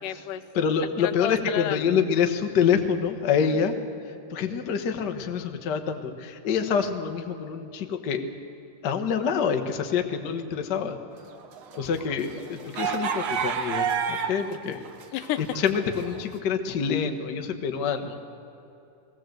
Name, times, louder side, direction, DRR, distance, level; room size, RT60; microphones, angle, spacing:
voice 1, 0.0-0.4 1.0-1.9 3.5-3.7 11.7-12.0 15.1-15.4, left 11 dB, 85° left, 10 dB, 2.3 m, -31 dB
voice 2, 0.5-3.7 4.3-8.3 8.8-11.0 11.8-14.8 15.6-18.2, left 7 dB, 60° left, 6 dB, 1.1 m, -26 dB
sound 1, 11.3-14.5 14.8-16.2, right 7 dB, 60° right, 1.5 m, -29 dB
21.0 x 17.0 x 7.8 m, 2.8 s
omnidirectional pair, 3.7 m